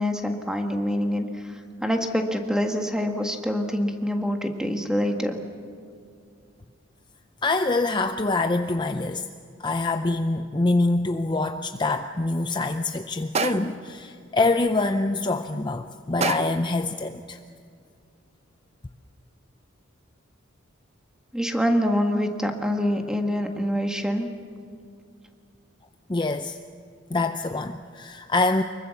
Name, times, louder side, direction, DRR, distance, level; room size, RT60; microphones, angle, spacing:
voice 1, 0.0-5.4 21.3-24.3, equal, 5° right, 4 dB, 1.7 m, -25 dB
voice 2, 7.4-9.3 9.6-17.4 26.1-26.6 27.1-28.6, left 2 dB, 20° left, 8 dB, 0.5 m, -25 dB
sound 1, 13.3-13.9 16.2-16.7, right 4 dB, 30° right, 0.7 m, -28 dB
24.5 x 23.0 x 7.2 m, 2.3 s
head